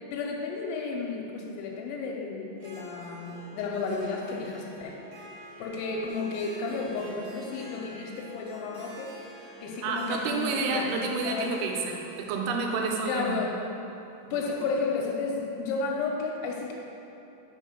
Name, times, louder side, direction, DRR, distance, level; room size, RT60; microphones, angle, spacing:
voice 1, 0.1-5.0 5.6-9.2 9.6-11.5 13.1-13.6 14.3-16.7, left 4 dB, 90° left, -1 dB, 2.6 m, -32 dB
Harp, 2.6-14.4, right 1 dB, 75° right, 1.6 m, -49 dB
voice 2, 9.8-13.5 14.3-14.4, right 4 dB, 90° right, 1 dB, 2.7 m, -29 dB
5.8 x 3.7 x 5.0 m, 2.9 s
omnidirectional pair, 4.7 m